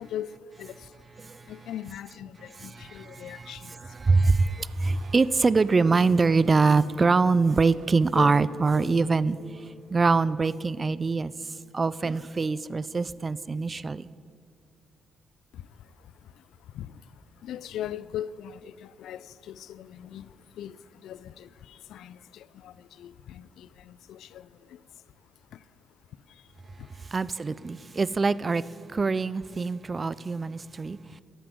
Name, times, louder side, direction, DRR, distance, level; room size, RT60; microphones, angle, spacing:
voice 1, 0.0-4.6 15.5-27.1, left 10 dB, 75° left, 0.3 m, -42 dB
sound 1, 3.8-10.3, right 6 dB, 80° right, 0.8 m, -53 dB
voice 2, 4.0-9.4 9.9-11.3 11.7-14.1 27.1-28.6 28.9-31.0, right 4 dB, 30° right, 0.3 m, -23 dB
sound 2, 8.2-11.8, left 5 dB, 60° left, 0.7 m, -40 dB
11.0 x 6.0 x 8.1 m
cardioid pair, 90°, 0 cm